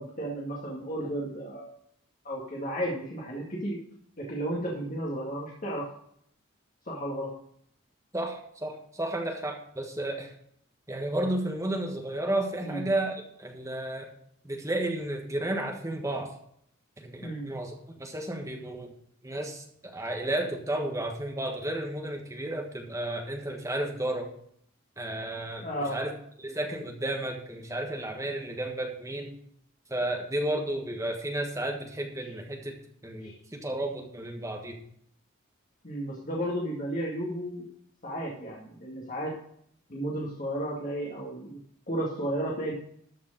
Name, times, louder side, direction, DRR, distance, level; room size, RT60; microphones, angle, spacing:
voice 1, 0.0-1.7 2.2-3.8 4.2-5.9 6.9-7.3 12.6-12.8 17.2-17.5 25.6-26.0 32.2-32.3 33.2-33.4 35.8-37.7 38.0-39.3 39.9-41.6 41.9-42.7, right 1 dB, 40° left, -3 dB, 2.1 m, -33 dB
voice 2, 8.1-10.3 10.9-14.1 14.4-16.3 17.0-18.9 19.2-24.3 25.0-26.1 26.4-29.3 29.9-32.7 33.0-34.8, right 1 dB, 15° right, 2 dB, 1.5 m, -32 dB
13.0 x 5.1 x 6.6 m, 0.68 s
head